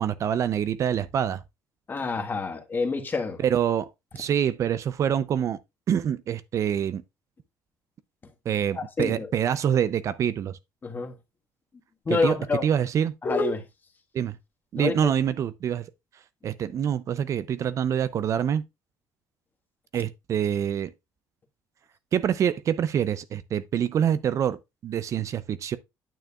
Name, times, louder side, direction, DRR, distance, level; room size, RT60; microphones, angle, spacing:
voice 1, 0.0-1.4 3.4-5.6 5.9-7.0 8.5-10.6 12.1-12.4 12.6-13.1 14.1-14.4 14.7-15.9 16.4-18.6 19.9-20.9 22.1-25.8, right 9 dB, 50° right, 0.5 m, -26 dB
voice 2, 1.9-3.4 8.7-9.3 10.8-11.1 12.0-12.6 13.2-13.6 14.7-14.9, left 3 dB, 30° left, 1.5 m, -27 dB
9.1 x 6.7 x 2.4 m
cardioid pair, 100°, 7 cm